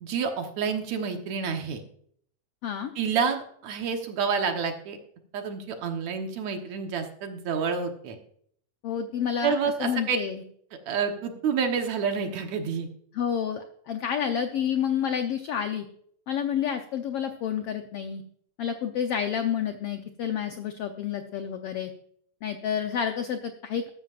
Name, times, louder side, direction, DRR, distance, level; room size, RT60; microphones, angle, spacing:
voice 1, 0.0-1.8 3.0-5.0 5.3-8.2 9.4-10.2 10.9-12.9, right 6 dB, 65° right, 5 dB, 2.2 m, -28 dB
voice 2, 8.8-10.4 13.1-15.9 16.3-18.2 18.6-21.9 22.4-23.9, left 8 dB, 85° left, 6 dB, 1.3 m, -29 dB
13.5 x 13.0 x 2.5 m, 0.64 s
omnidirectional pair, 3.7 m